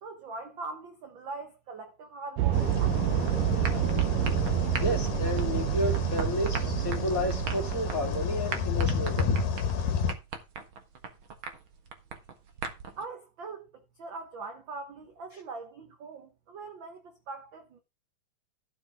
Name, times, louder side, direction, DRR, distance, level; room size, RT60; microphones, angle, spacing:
voice 1, 0.0-3.9 13.0-17.8, right 3 dB, 65° right, 1.2 m, -42 dB
sound 1, 2.4-8.8, right 11 dB, 85° right, 2.6 m, -28 dB
sound 2, 2.5-10.2, left 6 dB, 80° left, 3.2 m, -32 dB
sound 3, 3.2-13.0, right 5 dB, 45° right, 1.9 m, -40 dB
voice 2, 4.8-9.3, left 1 dB, 25° left, 3.2 m, -31 dB
12.5 x 9.0 x 3.6 m
omnidirectional pair, 3.9 m